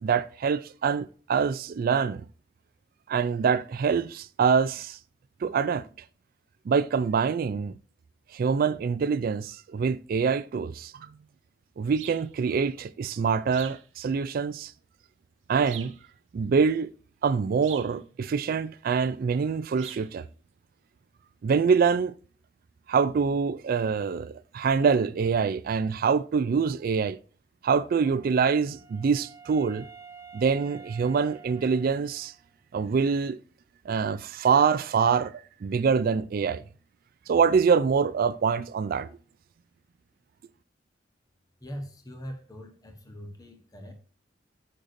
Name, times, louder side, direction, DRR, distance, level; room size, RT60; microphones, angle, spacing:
voice 1, 0.0-2.2 3.1-5.0 5.4-5.9 6.7-7.7 8.3-11.1 11.8-14.7 15.5-15.9 16.3-16.9 17.2-20.3 21.4-22.1 22.9-27.2 27.6-29.9 30.3-32.3 32.7-33.4 33.9-35.3 35.6-36.6 37.3-39.1, right 6 dB, 50° right, 0.3 m, -25 dB
sound 1, 12.0-12.3 13.5-13.9 15.7-16.0 17.6-18.0 19.8-20.1, right 11 dB, 85° right, 0.8 m, -43 dB
Wind instrument woodwind instrument, 27.7-32.5, right 6 dB, 15° right, 1.1 m, -49 dB
voice 2, 41.6-43.9, equal, 20° left, 1.1 m, -41 dB
8.7 x 6.6 x 2.6 m
head